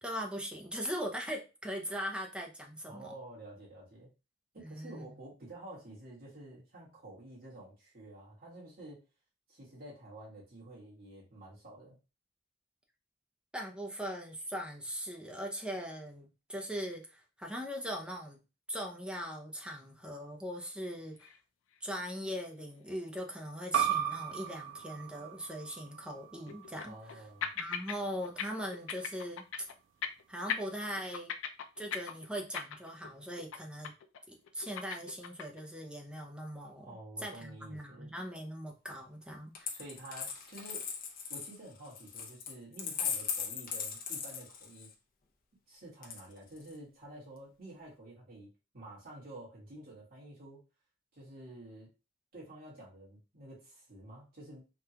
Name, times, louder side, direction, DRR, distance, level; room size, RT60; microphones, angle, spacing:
voice 1, 0.0-3.1 4.6-5.2 13.5-18.4 18.7-21.3 21.8-27.2 27.6-29.4 30.3-31.3 31.8-33.9 34.3-36.9 37.2-39.7, equal, 5° right, 1 dB, 0.5 m, -40 dB
voice 2, 2.9-4.1 4.5-9.0 9.5-12.0 26.8-27.5 36.8-38.1 39.7-40.9 41.3-44.9 45.7-50.6 51.1-51.9 52.3-54.6, right 1 dB, 50° right, -6 dB, 1.6 m, -50 dB
sound 1, 21.2-21.4 21.7-21.8 22.4-22.5 25.7-25.8 26.5-27.2 27.4-28.0 28.2-28.4 28.7-29.7 30.0-30.2 30.5-33.1 33.4-33.6 33.8-34.2 34.4-35.6, left 7 dB, 90° left, 0.4 m, -38 dB
sound 2, 23.7-28.9, right 10 dB, 75° right, 0.5 m, -37 dB
Coin (dropping), 39.5-44.9 46.0-46.7, left 7 dB, 50° left, 0.6 m, -38 dB
3.5 x 2.3 x 2.8 m, 0.30 s
head